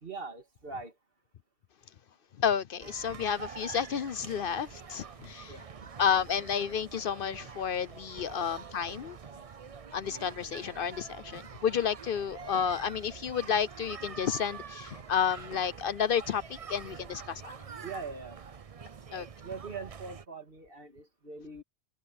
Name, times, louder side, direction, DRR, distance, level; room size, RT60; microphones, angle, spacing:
voice 1, 0.0-1.0 5.5-5.9 17.8-18.4 19.1-21.6, right 4 dB, 60° right, 2.6 m, -42 dB
voice 2, 2.4-5.6 6.0-9.2 9.9-17.5 19.1-19.3, left 7 dB, 60° left, 0.8 m, -31 dB
sound 1, 2.8-20.3, right 6 dB, 40° right, 0.7 m, -46 dB
omnidirectional pair, 1.1 m